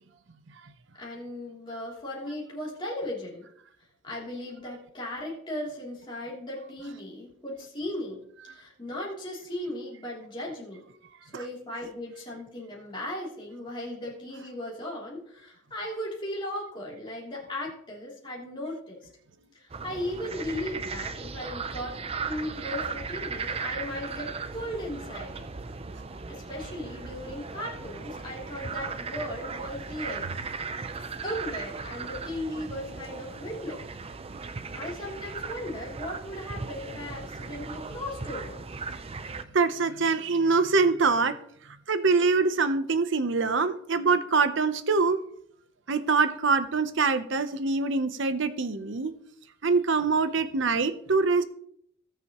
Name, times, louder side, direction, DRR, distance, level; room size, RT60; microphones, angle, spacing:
voice 1, 1.0-3.5 4.0-10.8 11.2-19.1 19.5-25.5 26.3-30.3 30.5-30.6 31.2-33.8 34.7-38.6, left 1 dB, 25° left, -4 dB, 3.0 m, -37 dB
sound 1, 19.7-39.4, right 4 dB, 30° right, 0.5 m, -37 dB
voice 2, 39.5-41.4 41.9-45.2 45.9-49.1 49.6-51.4, right 4 dB, 65° right, 12 dB, 0.8 m, -24 dB
18.5 x 6.8 x 3.0 m, 0.68 s
head